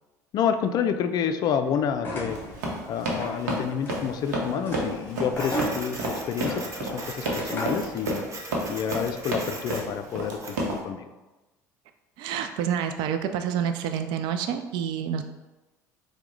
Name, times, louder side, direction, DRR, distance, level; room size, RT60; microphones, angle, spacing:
voice 1, 0.3-2.4 2.9-8.2 8.7-11.1, left 7 dB, 45° left, 8 dB, 0.4 m, -29 dB
sound 1, 1.9-7.9, equal, 20° left, 1.1 m, -36 dB
Run, 2.3-10.8, right 1 dB, 75° right, 0.8 m, -30 dB
Printer, 5.3-10.7, right 2 dB, 35° right, 0.8 m, -40 dB
voice 2, 12.2-15.2, right 8 dB, 55° right, 8 dB, 0.4 m, -28 dB
4.6 x 2.1 x 3.8 m, 1.1 s
hypercardioid pair, 65°, 9 cm